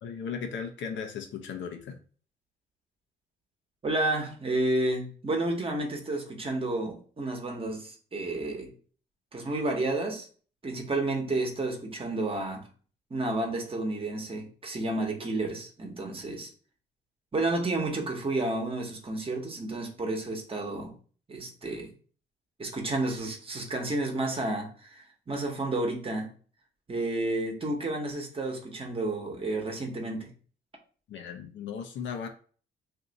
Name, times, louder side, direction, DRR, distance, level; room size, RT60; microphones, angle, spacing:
voice 1, 0.0-2.0 31.1-32.3, left 6 dB, 70° left, 0.6 m, -36 dB
voice 2, 3.8-8.7 9.3-10.3 10.6-12.7 13.1-16.5 17.3-20.9 21.3-21.9 22.6-26.3 26.9-30.3, right 2 dB, 30° right, 1.0 m, -31 dB
2.7 x 2.5 x 3.9 m
cardioid pair, 90°, 20 cm